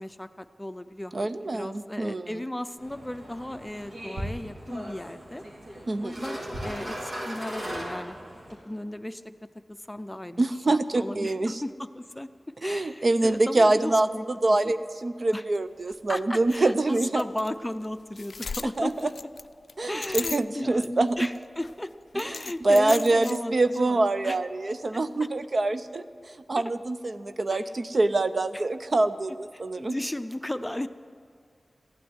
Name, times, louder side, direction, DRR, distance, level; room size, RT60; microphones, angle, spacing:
voice 1, 0.0-5.4 6.0-8.2 8.6-9.3 9.7-12.3 12.6-14.3 14.6-14.8 15.3-15.4 16.1-18.9 19.9-24.4 26.6-26.7 27.5-27.6 28.5-28.6 29.8-30.9, left 1 dB, 15° left, 11 dB, 0.6 m, -35 dB
voice 2, 1.1-2.3 5.9-6.2 10.4-11.6 12.6-14.1 14.4-17.2 18.8-19.1 19.8-21.3 22.6-30.0, right 2 dB, 55° right, 11 dB, 0.6 m, -25 dB
sound 1, 2.8-8.6, equal, 75° right, 3.8 m, -38 dB
sound 2, 15.5-15.6 15.9-16.0 16.5-16.6 17.2-17.5 17.8-17.9 18.2-20.9 21.2-21.7 22.2-23.4, left 4 dB, 80° left, 0.3 m, -37 dB
15.0 x 9.2 x 9.6 m, 2.2 s
wide cardioid pair, 75°, 0 cm